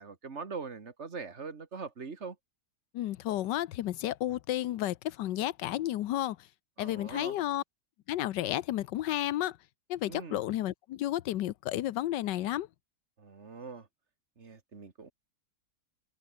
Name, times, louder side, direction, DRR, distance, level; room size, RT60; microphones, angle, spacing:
voice 1, 0.0-2.4 6.8-7.4 10.1-10.4 13.2-13.9 14.4-15.1, right 4 dB, 40° right, 2.1 m, -42 dB
voice 2, 2.9-6.4 6.8-7.6 8.1-9.6 9.9-12.7, left 13 dB, 80° left, 1.4 m, -32 dB
open air
omnidirectional pair, 1.9 m